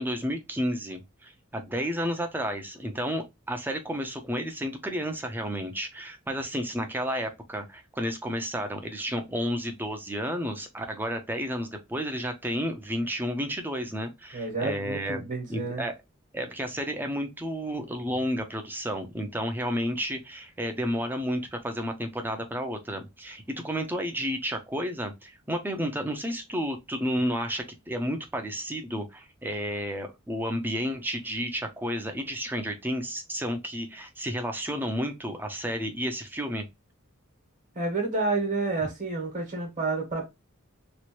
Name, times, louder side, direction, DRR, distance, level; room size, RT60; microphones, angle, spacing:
voice 1, 0.0-15.9 16.3-36.6, equal, 10° right, 0.6 m, -31 dB
voice 2, 14.3-15.8 37.7-40.3, right 3 dB, 40° right, 1.2 m, -29 dB
3.1 x 2.5 x 2.9 m
head